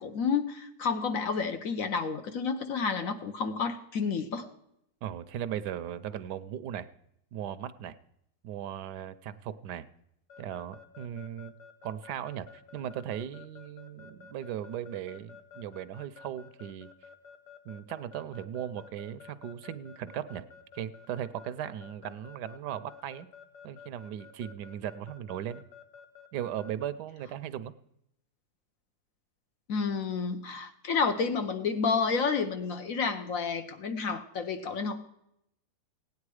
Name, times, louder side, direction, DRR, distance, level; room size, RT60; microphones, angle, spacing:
voice 1, 0.0-4.5 29.7-35.1, left 5 dB, 60° left, 8 dB, 1.1 m, -30 dB
voice 2, 5.0-6.9 7.3-8.0 8.4-9.9 10.4-11.5 11.8-16.9 17.7-20.5 20.7-23.3 23.6-25.6 26.3-27.7, right 10 dB, 75° right, 15 dB, 1.2 m, -37 dB
Keyboard (musical) / Alarm, 10.3-26.9, left 6 dB, 75° left, 1.5 m, -51 dB
16.5 x 9.5 x 4.8 m, 0.79 s
omnidirectional pair, 1.8 m